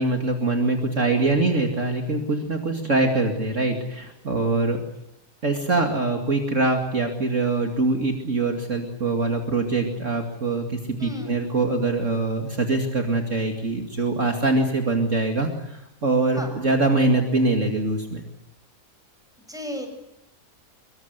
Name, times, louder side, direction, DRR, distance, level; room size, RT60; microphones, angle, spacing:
voice 1, 0.0-4.8 5.4-18.2, right 3 dB, 50° right, 3 dB, 2.8 m, -23 dB
voice 2, 10.9-11.3 16.3-16.5 19.5-19.9, equal, ahead, 4 dB, 7.1 m, -34 dB
25.5 x 23.5 x 8.1 m, 0.85 s
omnidirectional pair, 1.7 m